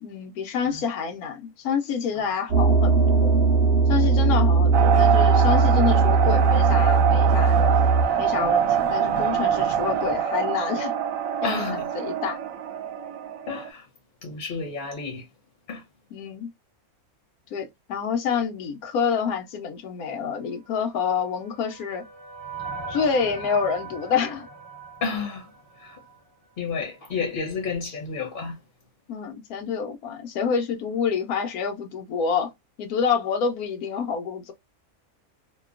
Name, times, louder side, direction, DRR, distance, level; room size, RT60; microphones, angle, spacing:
voice 1, 0.0-3.4 3.9-7.7 8.2-10.9 11.4-12.4 16.1-16.5 17.5-22.0 22.9-24.5 29.1-32.5 32.8-34.5, left 6 dB, 85° left, 1.2 m, -27 dB
sound 1, 2.5-8.1, right 4 dB, 50° right, 1.0 m, -19 dB
sound 2, 4.7-13.7, right 8 dB, 75° right, 0.9 m, -24 dB
voice 2, 11.4-11.9 13.5-13.9 14.2-15.3 15.7-15.9 25.0-26.0 26.6-28.6, left 4 dB, 45° left, 0.8 m, -31 dB
sound 3, 20.9-26.3, right 4 dB, 25° right, 0.7 m, -39 dB
2.8 x 2.2 x 2.3 m
omnidirectional pair, 1.5 m